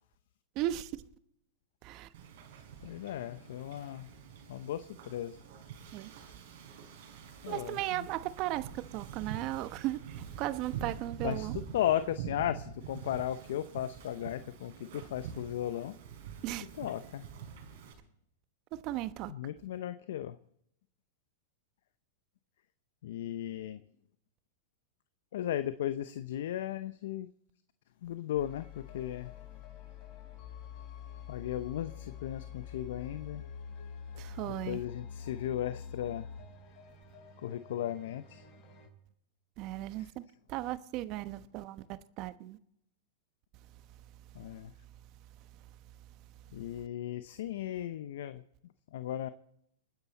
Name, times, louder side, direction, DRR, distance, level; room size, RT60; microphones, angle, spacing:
voice 1, 0.5-0.9 1.8-2.1 5.9-6.1 7.5-11.5 16.4-16.7 18.7-19.3 34.1-34.8 39.6-40.2 40.5-41.8 42.2-42.6, right 15 dB, 45° right, 1.0 m, -36 dB
Wind / Ocean, 2.1-17.9, right 8 dB, 65° right, 5.1 m, -46 dB
voice 2, 2.8-4.1 4.5-5.4 7.4-8.1 11.2-15.9 16.8-17.3 19.3-20.4 23.0-23.8 25.3-27.3 28.0-29.3 31.3-33.4 34.5-36.3 37.4-38.4 40.0-40.1 44.3-44.7 46.5-48.4 48.9-49.3, left 11 dB, 70° left, 0.7 m, -36 dB
sound 1, 28.3-38.9, left 7 dB, 45° left, 4.9 m, -47 dB
28.5 x 9.8 x 4.2 m
hypercardioid pair, 115°, 0 cm